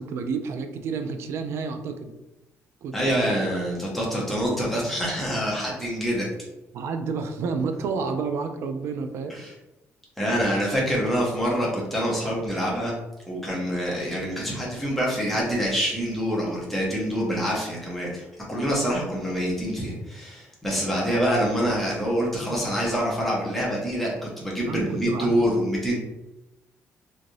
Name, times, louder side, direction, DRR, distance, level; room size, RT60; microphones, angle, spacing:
voice 1, 0.0-2.1 2.8-3.4 6.7-9.4 24.7-25.5, right 5 dB, 60° right, 7 dB, 0.3 m, -30 dB
voice 2, 2.9-6.3 9.3-9.5 10.2-12.9 13.3-25.9, equal, 5° left, -5 dB, 0.7 m, -26 dB
3.1 x 2.5 x 2.6 m, 0.99 s
cardioid pair, 180°, 5 cm